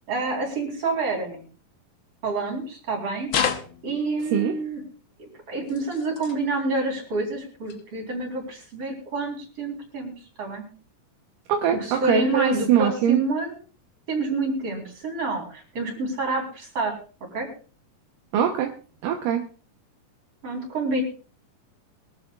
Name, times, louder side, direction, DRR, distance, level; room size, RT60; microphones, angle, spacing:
voice 1, 0.1-1.4 2.2-3.3 3.8-4.8 5.2-10.6 11.7-13.5 14.1-16.9 17.3-17.5 20.4-21.0, right 3 dB, 45° right, 1 dB, 5.0 m, -28 dB
sound 1, 3.3-4.2 5.6-6.4 7.7-7.8 8.6-8.7, left 7 dB, 65° left, 1.3 m, -29 dB
voice 2, 11.5-13.2 18.3-18.7 19.0-19.4, right 9 dB, 80° right, 3 dB, 2.7 m, -22 dB
23.0 x 12.5 x 2.4 m, 0.39 s
omnidirectional pair, 3.8 m